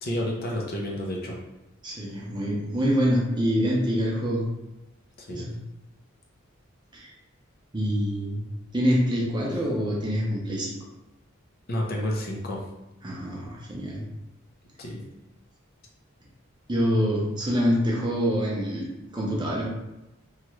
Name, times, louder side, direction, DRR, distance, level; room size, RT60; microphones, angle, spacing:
voice 1, 0.0-1.4 5.2-5.5 9.5-9.6 11.7-12.6 14.8-15.0, left 1 dB, 45° left, -1 dB, 0.5 m, -30 dB
voice 2, 1.8-4.5 5.3-5.6 6.9-7.1 7.7-8.4 8.7-10.7 13.0-14.0 16.7-18.9 19.1-19.6, equal, 20° right, -4 dB, 0.6 m, -25 dB
2.9 x 2.3 x 3.0 m, 0.99 s
head